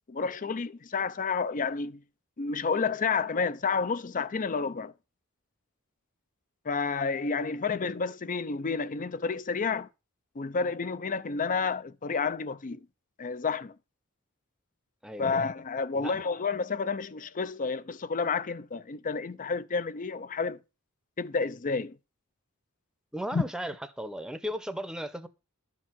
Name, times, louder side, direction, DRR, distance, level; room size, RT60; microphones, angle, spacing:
voice 1, 0.1-2.0 2.4-4.9 6.7-9.9 10.4-12.8 13.2-13.7 15.2-20.6 21.2-22.0 23.3-23.4, left 5 dB, 40° left, 0.5 m, -30 dB
voice 2, 15.0-15.4 15.9-16.2 23.1-25.3, equal, 5° right, 0.8 m, -36 dB
12.0 x 4.7 x 7.4 m
head